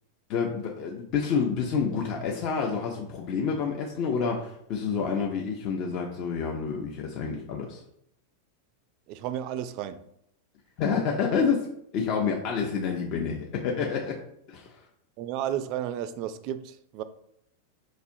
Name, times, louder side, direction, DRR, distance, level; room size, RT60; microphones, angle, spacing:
voice 1, 0.3-7.8 10.8-11.7 11.9-14.2 14.5-14.7, left 6 dB, 50° left, 0.5 m, -28 dB
voice 2, 9.1-10.0 11.3-11.4 15.2-17.0, right 10 dB, 50° right, 0.3 m, -33 dB
4.1 x 2.5 x 2.7 m
hypercardioid pair, 120°, 0 cm